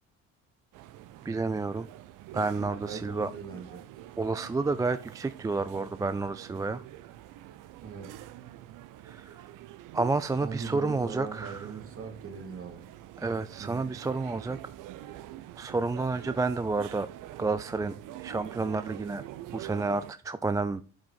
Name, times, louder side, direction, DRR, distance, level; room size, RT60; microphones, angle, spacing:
sound 1, 0.7-20.1, right 13 dB, 65° right, 0.7 m, -46 dB
voice 1, 1.3-1.9 2.3-3.3 4.2-6.8 9.0-9.4 9.9-11.7 13.2-14.6 15.6-17.1 17.4-18.0 18.2-19.2 19.5-20.8, right 3 dB, 10° right, 0.3 m, -30 dB
voice 2, 2.8-3.8 7.8-8.2 10.4-12.9 13.6-13.9, right 5 dB, 40° right, 2.3 m, -40 dB
7.5 x 5.2 x 5.6 m
supercardioid pair, 70°, 34 cm